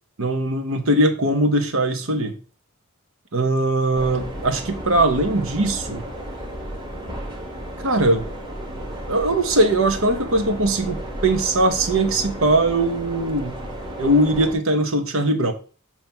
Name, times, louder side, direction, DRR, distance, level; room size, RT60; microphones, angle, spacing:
voice 1, 0.2-2.4 3.3-6.0 7.8-8.3 9.1-13.6 14.0-15.5, right 1 dB, 80° right, 6 dB, 1.2 m, -20 dB
sound 1, 3.9-14.5, right 1 dB, 20° right, 1.5 m, -33 dB
7.4 x 3.0 x 5.9 m, 0.38 s
head